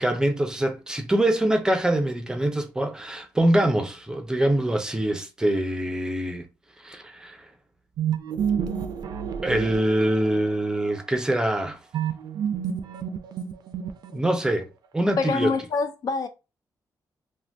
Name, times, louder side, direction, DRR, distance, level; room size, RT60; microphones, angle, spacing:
voice 1, 0.0-6.4 6.8-7.5 9.4-11.8 14.1-14.7 14.9-15.5, right 1 dB, 10° right, 0.5 m, -24 dB
sound 1, 8.0-10.5 11.9-14.4, right 8 dB, 70° right, 0.4 m, -29 dB
voice 2, 15.2-16.3, left 4 dB, 60° left, 0.4 m, -25 dB
2.5 x 2.2 x 3.3 m
wide cardioid pair, 130°, 7 cm